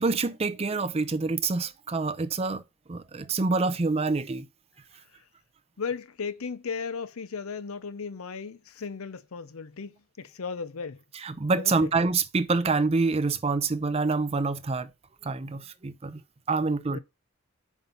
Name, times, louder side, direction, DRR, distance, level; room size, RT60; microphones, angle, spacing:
voice 1, 0.0-2.6 2.9-4.5 11.2-14.9 15.2-16.2 16.5-17.0, right 3 dB, 30° right, 0.5 m, -26 dB
voice 2, 5.8-11.0 11.6-11.9 16.9-17.0, left 5 dB, 75° left, 0.7 m, -36 dB
5.5 x 4.5 x 5.3 m
head